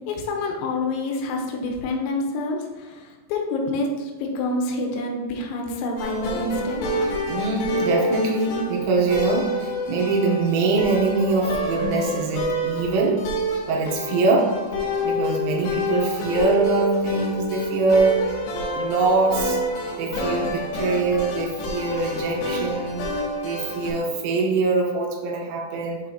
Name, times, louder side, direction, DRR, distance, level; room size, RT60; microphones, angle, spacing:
voice 1, 0.1-6.8, left 2 dB, 85° left, 1 dB, 3.6 m, -27 dB
sound 1, 6.0-23.9, equal, 65° left, 2.9 m, -27 dB
voice 2, 7.3-13.2 13.7-14.5 15.0-18.2 18.7-19.6 20.0-23.0 23.4-26.0, right 3 dB, 80° right, 0 dB, 3.3 m, -23 dB
7.7 x 6.0 x 2.8 m, 1.4 s
omnidirectional pair, 6.0 m